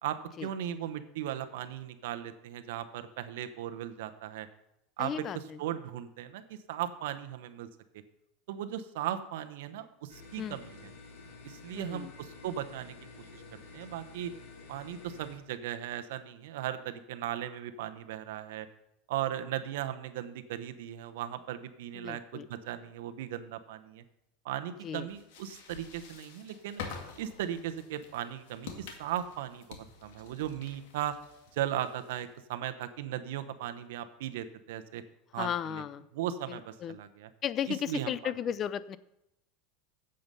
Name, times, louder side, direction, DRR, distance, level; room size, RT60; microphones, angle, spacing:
voice 1, 0.0-4.5 5.0-7.7 8.5-10.9 11.4-12.9 13.3-14.3 14.7-18.7 19.1-24.0 24.4-26.8 27.2-31.2 31.5-35.0 35.3-35.8 36.1-37.3 37.6-38.3, right 11 dB, 80° right, 10 dB, 0.9 m, -37 dB
voice 2, 5.0-5.6 10.4-10.6 11.7-12.1 21.9-22.5 24.8-25.1 35.4-36.0 36.5-37.0 37.4-39.0, left 9 dB, 35° left, 16 dB, 0.4 m, -35 dB
sound 1, 10.1-15.4, left 3 dB, 55° left, 3.8 m, -50 dB
sound 2, 25.1-32.4, left 6 dB, 75° left, 2.0 m, -48 dB
8.8 x 7.8 x 5.4 m, 0.82 s
supercardioid pair, 130°, 0 cm